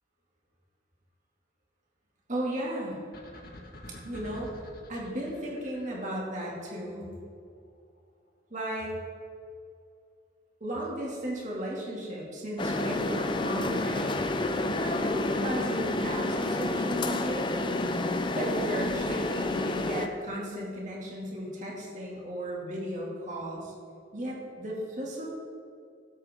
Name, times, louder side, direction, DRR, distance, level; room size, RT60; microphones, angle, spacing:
voice 1, 2.3-3.0 3.9-4.5 4.9-7.1 8.5-8.9 10.6-14.3 14.7-17.5 18.3-23.7 24.1-25.4, right 1 dB, 40° right, -4 dB, 2.3 m, -35 dB
sound 1, 3.1-6.6, left 1 dB, 55° left, 1.7 m, -47 dB
sound 2, 12.6-20.1, left 2 dB, 25° left, 0.6 m, -29 dB
16.0 x 8.4 x 3.6 m, 2.4 s
head